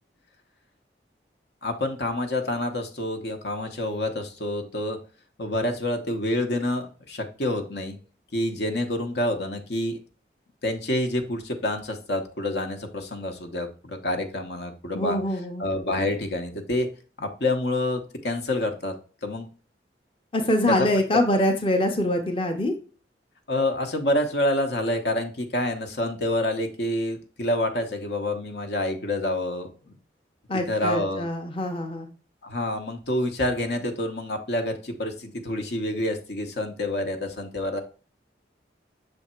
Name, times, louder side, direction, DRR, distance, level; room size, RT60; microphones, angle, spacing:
voice 1, 1.6-5.0 5.4-8.0 8.3-10.0 10.6-15.2 15.6-16.9 17.2-18.9 19.2-19.5 20.7-20.9 23.5-30.0 30.5-31.3 32.4-37.8, left 1 dB, 65° left, 5 dB, 1.0 m, -27 dB
voice 2, 14.9-15.6 20.3-22.7 30.5-32.1, left 1 dB, 30° left, 4 dB, 0.7 m, -24 dB
6.5 x 3.5 x 4.4 m, 0.37 s
head